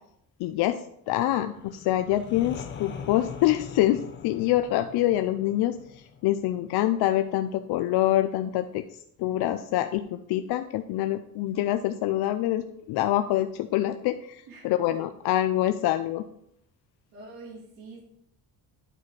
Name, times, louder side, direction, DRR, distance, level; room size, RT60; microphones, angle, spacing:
voice 1, 0.4-16.2, left 13 dB, 80° left, 9 dB, 0.5 m, -26 dB
sound 1, 1.5-7.3, left 7 dB, 30° left, 0.6 m, -42 dB
voice 2, 17.1-18.0, right 3 dB, 65° right, -4 dB, 2.5 m, -44 dB
8.9 x 4.2 x 4.7 m, 0.75 s
cardioid pair, 175°, 38 cm